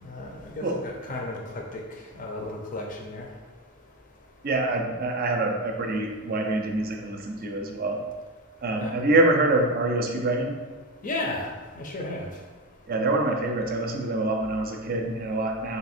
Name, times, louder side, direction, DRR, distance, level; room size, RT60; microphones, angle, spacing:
voice 1, 0.0-1.8 2.2-3.3 8.8-8.9 11.0-12.3, left 2 dB, 40° left, 1 dB, 0.6 m, -34 dB
voice 2, 4.4-8.0 8.6-10.6 12.9-15.8, right 2 dB, 45° right, 3 dB, 0.5 m, -25 dB
3.4 x 2.7 x 4.3 m, 1.4 s
head